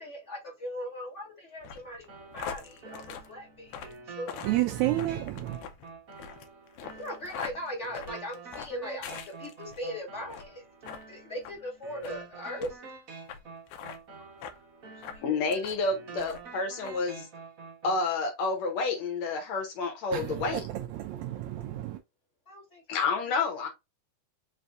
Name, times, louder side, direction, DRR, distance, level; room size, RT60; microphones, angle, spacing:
voice 1, 0.0-4.4 6.9-10.6 11.1-12.8 14.2-14.6 15.0-15.7 22.5-23.1, equal, 30° left, 1.5 m, -40 dB
sound 1, 1.6-9.8 10.2-10.5 10.8-11.0 11.4-11.6 12.0-12.2 12.6-12.7 13.3-13.4 13.7-14.0 14.4-14.6 15.0-15.8 16.2-16.5 16.8-17.0, left 7 dB, 80° left, 2.0 m, -42 dB
sound 2, 2.1-18.1, right 4 dB, 55° right, 0.9 m, -48 dB
voice 2, 4.4-5.6 20.1-22.0, right 15 dB, 80° right, 1.7 m, -30 dB
voice 3, 15.2-17.3 17.8-20.7 22.9-23.7, left 4 dB, 65° left, 2.1 m, -29 dB
5.3 x 3.3 x 2.5 m
omnidirectional pair, 3.6 m